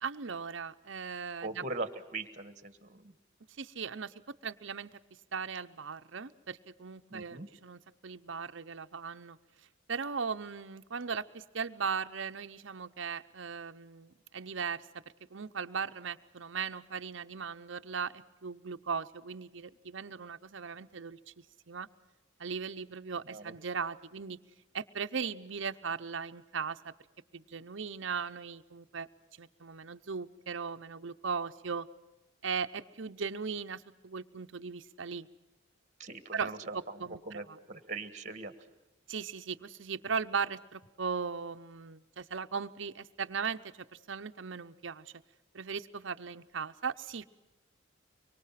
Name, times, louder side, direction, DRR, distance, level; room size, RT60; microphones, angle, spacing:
voice 1, 0.0-1.6 3.6-4.9 5.3-9.4 9.9-14.9 15.3-21.2 21.7-21.9 22.4-24.4 24.7-26.9 27.3-29.1 29.4-31.9 32.4-35.3 36.3-37.6 39.1-45.1 45.5-47.2, right 5 dB, 65° right, 10 dB, 0.8 m, -38 dB
voice 2, 1.4-3.1 7.1-7.5 23.3-23.5 36.0-38.5, right 3 dB, 35° right, 11 dB, 1.7 m, -41 dB
24.5 x 24.0 x 5.9 m, 1.1 s
head